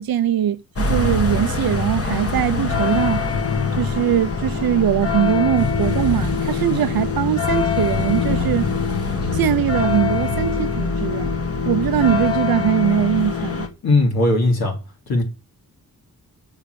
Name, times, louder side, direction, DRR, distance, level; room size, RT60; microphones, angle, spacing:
voice 1, 0.0-3.2 3.8-8.7 9.3-11.3 11.6-13.7, right 10 dB, 80° right, 0.7 m, -21 dB
sound 1, 0.8-13.7, left 5 dB, 40° left, 1.4 m, -23 dB
voice 2, 13.8-14.8 15.1-15.2, left 2 dB, 80° left, 3.1 m, -18 dB
7.0 x 5.7 x 6.8 m
cardioid pair, 90°, 36 cm